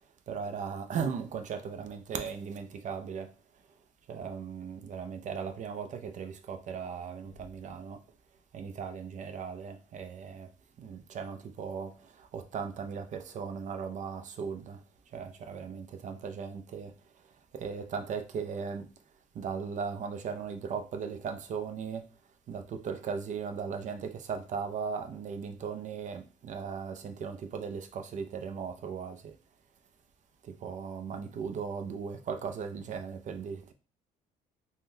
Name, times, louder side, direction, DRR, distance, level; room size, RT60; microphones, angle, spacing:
voice 1, 0.3-3.3 4.1-8.0 8.5-10.5 10.8-14.8 15.1-16.9 17.5-18.9 19.3-22.0 22.5-29.3 30.4-33.7, right 6 dB, 45° right, 0.4 m, -37 dB
3.5 x 2.2 x 2.6 m
cardioid pair, 110°, 17 cm